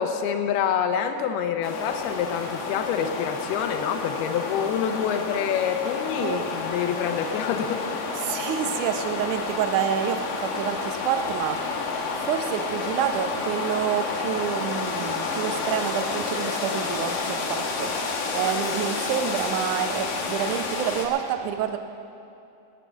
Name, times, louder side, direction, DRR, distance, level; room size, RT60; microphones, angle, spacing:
voice 1, 0.0-7.8, left 8 dB, 90° left, 7 dB, 2.8 m, -26 dB
sound 1, 1.6-21.1, left 4 dB, 70° left, 3.0 m, -30 dB
voice 2, 8.2-18.0 18.3-21.8, right 9 dB, 80° right, 7 dB, 1.8 m, -28 dB
19.0 x 7.5 x 7.1 m, 2.7 s
omnidirectional pair, 4.4 m